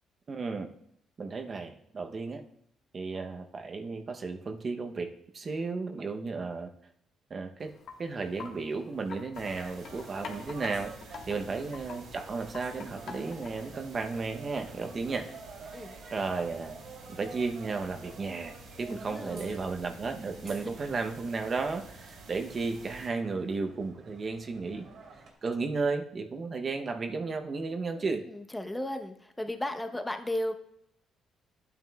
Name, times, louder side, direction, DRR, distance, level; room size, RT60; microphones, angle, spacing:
voice 1, 0.3-0.7 1.2-2.4 2.9-6.7 7.3-10.9 11.3-15.3 16.1-16.8 17.1-24.9 25.4-28.3, right 4 dB, 40° right, 5 dB, 0.7 m, -34 dB
Wind chime, 7.6-13.8, left 5 dB, 60° left, 1.3 m, -47 dB
sound 1, 9.3-23.1, right 2 dB, 80° right, 2.5 m, -51 dB
sound 2, 9.5-25.3, right 4 dB, 65° right, 2.4 m, -50 dB
voice 2, 14.8-15.2 15.7-15.9 18.9-19.6 20.4-20.6 28.0-30.5, left 1 dB, 10° left, 6 dB, 0.8 m, -36 dB
10.5 x 9.1 x 2.2 m, 0.71 s
cardioid pair, 105°, 0 cm